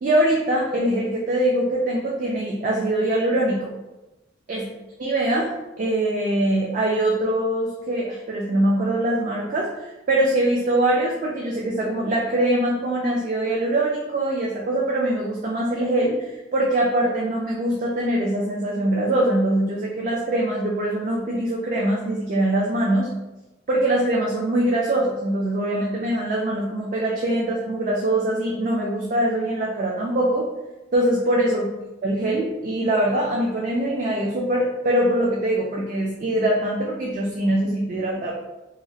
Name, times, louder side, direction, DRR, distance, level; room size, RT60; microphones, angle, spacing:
voice 1, 0.0-3.6 4.5-4.7 5.0-5.5 5.8-23.1 23.7-30.5 30.9-31.7 32.0-38.3, right 1 dB, 40° right, -3 dB, 0.3 m, -23 dB
2.9 x 2.3 x 2.7 m, 1.0 s
head